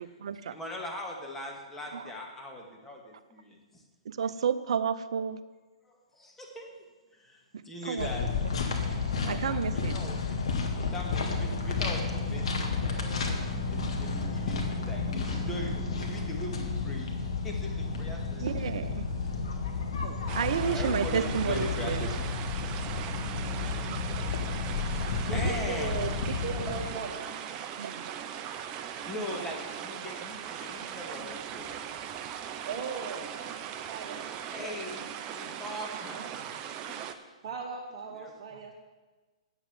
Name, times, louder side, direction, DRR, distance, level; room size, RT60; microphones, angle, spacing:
voice 1, 0.0-0.6 1.9-2.0 4.1-5.4 7.8-8.1 9.3-10.0 18.4-18.8 20.4-22.1 27.8-28.1, right 7 dB, 65° right, 13 dB, 0.6 m, -31 dB
voice 2, 0.5-3.8 5.8-6.9 7.1-8.3 9.2-10.2 10.7-17.1 17.4-18.5 20.6-22.3 23.6-24.5 25.3-26.0 29.0-32.1 34.5-36.5 38.1-38.3, left 1 dB, 10° left, -1 dB, 2.0 m, -41 dB
sound 1, 8.0-26.9, left 4 dB, 65° left, 1.7 m, -32 dB
voice 3, 18.4-19.4 20.0-20.2 25.2-27.1 32.6-33.5 33.9-34.2 35.5-35.6 36.1-36.2 37.4-38.7, right 5 dB, 45° right, -2 dB, 1.4 m, -38 dB
sound 2, 20.3-37.1, right 9 dB, 30° right, 0.7 m, -39 dB
8.8 x 7.2 x 7.3 m, 1.3 s
hypercardioid pair, 120°, 3 cm